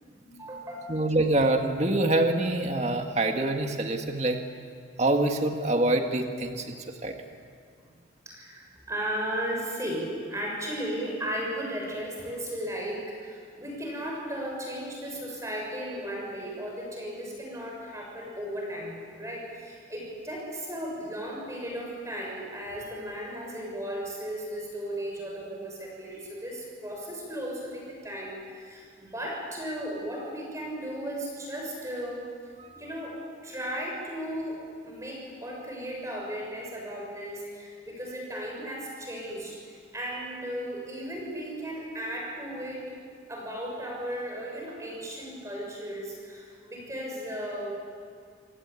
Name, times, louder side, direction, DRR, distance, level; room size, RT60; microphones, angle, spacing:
voice 1, 0.1-1.0 8.2-32.2 32.8-42.9 43.3-47.8, equal, 15° right, -2 dB, 6.7 m, -35 dB
voice 2, 0.9-4.4 5.0-6.8 7.0-7.1, right 2 dB, 35° right, 4 dB, 1.9 m, -25 dB
28.0 x 19.0 x 8.5 m, 2.2 s
head